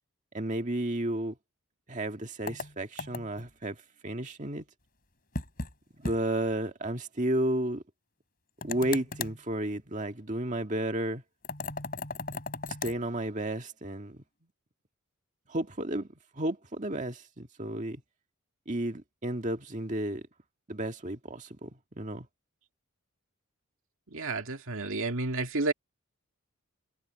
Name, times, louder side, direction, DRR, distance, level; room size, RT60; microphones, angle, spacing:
voice 1, 0.3-1.3 1.9-3.8 4.0-4.6 6.0-7.8 8.6-11.2 12.8-14.2 15.5-16.1 16.3-18.0 18.7-20.2 20.7-21.7 22.0-22.3, right 1 dB, 35° right, 1.9 m, -32 dB
sound 1, 2.5-3.5 5.3-5.7 6.0-6.2 6.5-6.6 8.6-9.4 11.4-13.0, left 3 dB, 40° left, 4.3 m, -36 dB
voice 2, 24.1-25.7, right 3 dB, 65° right, 2.1 m, -31 dB
head